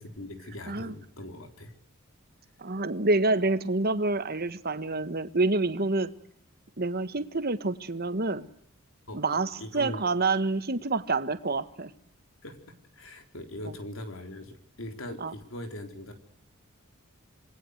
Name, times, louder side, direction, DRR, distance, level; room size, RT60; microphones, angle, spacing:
voice 1, 0.0-1.7 9.1-9.2 9.6-10.0 12.4-12.6 12.9-16.1, left 1 dB, 65° left, 4.1 m, -40 dB
voice 2, 2.6-6.1 6.8-8.5 9.1-11.9 15.2-15.3, right 3 dB, 45° right, 1.5 m, -27 dB
27.0 x 21.0 x 8.1 m
head